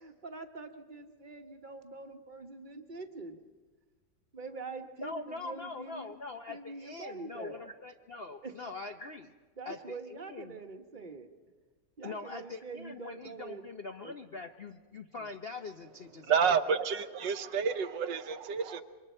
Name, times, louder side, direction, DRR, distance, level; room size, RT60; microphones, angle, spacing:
voice 1, 0.0-3.4 4.3-6.1 6.5-7.6 8.4-8.5 9.6-11.3 12.0-13.6 14.0-14.1, right 3 dB, 30° right, 5 dB, 1.1 m, -44 dB
voice 2, 5.0-9.3 9.6-10.6 12.0-16.4 16.7-16.8, left 3 dB, 55° left, 5 dB, 0.6 m, -43 dB
voice 3, 16.2-18.8, right 6 dB, 75° right, 9 dB, 1.5 m, -29 dB
27.5 x 23.5 x 4.4 m, 1.4 s
omnidirectional pair, 2.0 m